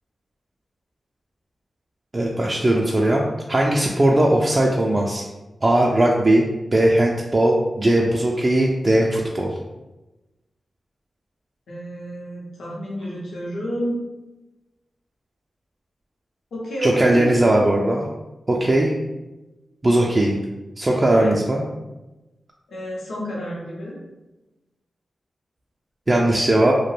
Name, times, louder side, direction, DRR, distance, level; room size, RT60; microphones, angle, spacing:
voice 1, 2.1-3.2 3.5-5.2 5.6-6.5 6.7-9.5 16.8-18.1 18.5-18.9 19.8-20.4 20.8-21.6 26.1-26.7, right 1 dB, 35° right, -2 dB, 0.3 m, -18 dB
voice 2, 11.7-14.0 16.5-17.4 21.1-21.3 22.7-24.0, equal, 85° left, -4 dB, 0.6 m, -29 dB
2.2 x 2.1 x 3.1 m, 1.1 s
cardioid pair, 60°, 0 cm